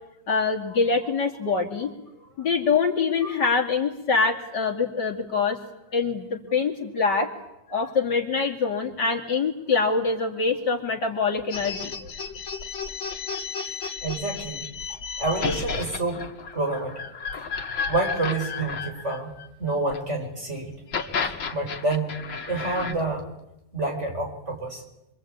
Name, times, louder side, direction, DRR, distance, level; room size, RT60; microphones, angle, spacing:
voice 1, 0.3-1.9 2.4-5.6 5.9-7.3 7.7-12.1, left 4 dB, 60° left, 1 dB, 3.1 m, -24 dB
sound 1, 11.5-20.0 20.7-22.9, left 5 dB, 80° left, 2.6 m, -32 dB
voice 2, 14.0-14.6 15.2-16.2 16.5-16.9 17.9-19.3 19.6-20.7 21.5-22.2 22.5-23.3 23.7-24.8, right 2 dB, 35° right, 2 dB, 5.6 m, -28 dB
26.5 x 24.5 x 8.8 m, 0.90 s
omnidirectional pair, 2.1 m